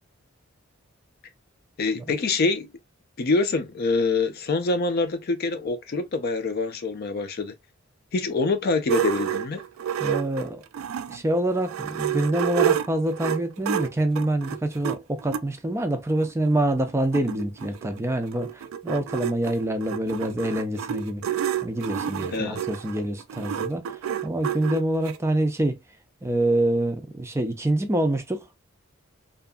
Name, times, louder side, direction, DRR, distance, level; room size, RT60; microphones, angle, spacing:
voice 1, 1.8-2.7 3.2-7.5 8.1-9.6 22.3-22.6, left 3 dB, 50° left, 0.4 m, -25 dB
sound 1, 8.9-11.2 11.6-15.4 16.2-16.3 16.6-16.7 16.9-25.2, right 9 dB, 85° right, 0.3 m, -29 dB
voice 2, 10.0-10.6 11.1-21.2 21.6-25.8 26.2-28.5, right 1 dB, 15° right, 0.4 m, -26 dB
2.7 x 2.5 x 2.2 m
head